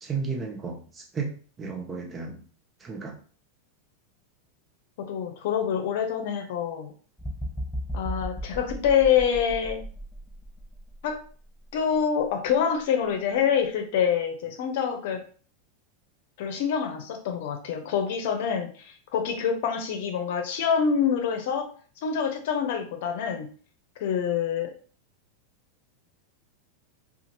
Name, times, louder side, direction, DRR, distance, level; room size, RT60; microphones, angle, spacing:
voice 1, 0.0-2.4 2.8-3.2, right 5 dB, 20° right, 2 dB, 0.7 m, -33 dB
voice 2, 5.0-6.9 7.9-9.8 11.0-11.2 11.7-15.2 16.4-21.7 22.0-23.5 24.0-24.7, left 7 dB, 65° left, 5 dB, 0.7 m, -26 dB
sound 1, 7.2-11.2 11.7-11.9, equal, 5° left, 0.3 m, -35 dB
2.6 x 2.4 x 2.9 m, 0.42 s
supercardioid pair, 130°, 0 cm